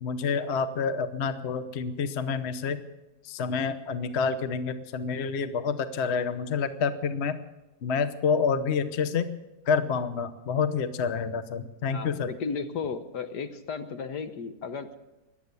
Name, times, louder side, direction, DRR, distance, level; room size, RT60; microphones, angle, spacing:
voice 1, 0.0-2.8 3.2-7.4 7.8-9.3 9.7-12.3, left 5 dB, 45° left, 11 dB, 1.0 m, -28 dB
voice 2, 11.9-15.0, left 5 dB, 65° left, 9 dB, 1.6 m, -34 dB
17.5 x 12.0 x 6.9 m, 1.0 s
omnidirectional pair, 2.0 m